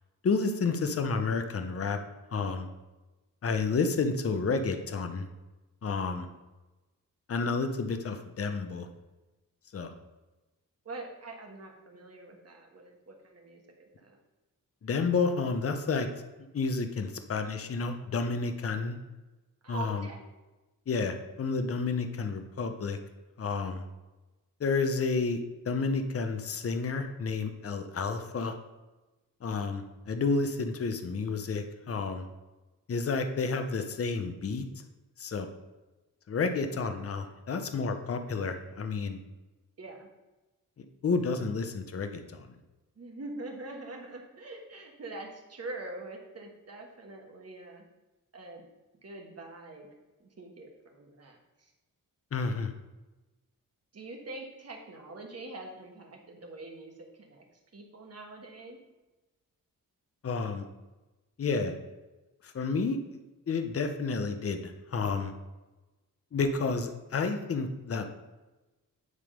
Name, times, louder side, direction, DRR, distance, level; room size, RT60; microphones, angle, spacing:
voice 1, 0.2-2.0 2.3-2.7 3.4-5.3 5.8-6.3 7.3-8.9 9.7-9.9 14.8-16.1 16.5-19.0 19.7-20.1 20.9-23.0 23.4-23.8 24.6-28.5 29.4-32.3 32.9-34.6 35.2-35.5 36.3-39.2 40.8-42.5 52.3-52.7 60.2-60.6 61.4-61.8 62.4-63.2 63.5-65.3 66.3-68.1, left 4 dB, 45° left, 7 dB, 0.7 m, -30 dB
voice 2, 10.8-14.2 19.6-20.3 39.8-40.1 43.0-47.8 48.3-48.6 49.0-49.9 50.2-51.7 53.9-57.4 57.7-58.8, right 2 dB, 45° right, 1 dB, 1.3 m, -44 dB
9.7 x 3.6 x 5.0 m, 1.1 s
wide cardioid pair, 135°, 34 cm